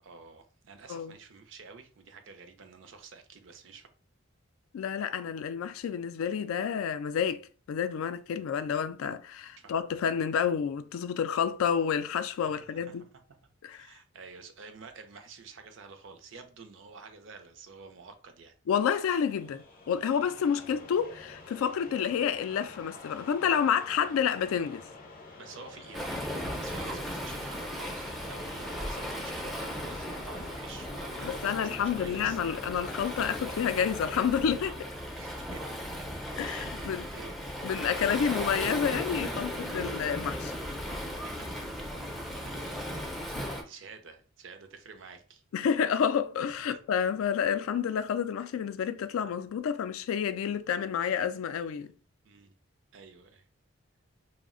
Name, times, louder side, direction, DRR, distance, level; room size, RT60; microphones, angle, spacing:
voice 1, 0.0-3.9 9.6-9.7 12.5-13.1 13.7-18.5 25.4-32.4 32.7-32.9 35.1-35.6 36.4-37.5 39.7-39.9 41.2-41.7 42.1-45.4 46.7-46.8 52.2-52.5 52.9-53.4, right 5 dB, 65° right, 0.5 m, -49 dB
voice 2, 4.7-13.0 13.6-13.9 18.7-24.8 31.2-34.7 36.4-37.0 37.6-40.5 42.9-43.0 45.5-51.9, left 7 dB, 85° left, 0.3 m, -29 dB
sound 1, 18.8-33.6, left 3 dB, 45° left, 0.6 m, -49 dB
Waves surf, 25.9-43.6, equal, ahead, 0.4 m, -37 dB
2.3 x 2.0 x 3.6 m
head